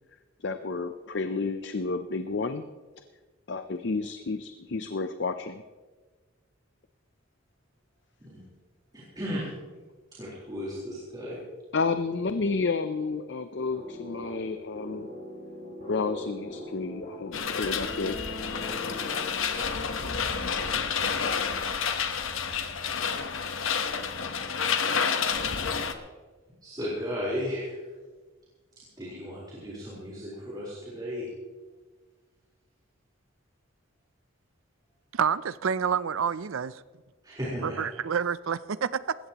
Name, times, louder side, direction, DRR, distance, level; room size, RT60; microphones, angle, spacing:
voice 1, 0.4-2.7 3.5-5.6 11.7-15.1 15.9-18.5, left 4 dB, 55° left, 9 dB, 0.6 m, -31 dB
voice 2, 8.9-9.5 10.2-11.4 20.0-20.1 20.5-20.9 26.6-27.8 29.0-31.3 37.2-37.8, equal, 20° right, -8 dB, 4.1 m, -35 dB
sound 1, 13.7-19.7, equal, 40° left, 5.0 m, -42 dB
sound 2, 17.3-25.9, left 6 dB, 75° left, 1.1 m, -29 dB
voice 3, 35.1-36.8 37.6-39.2, right 7 dB, 80° right, 17 dB, 0.5 m, -28 dB
19.5 x 16.0 x 3.0 m, 1.4 s
head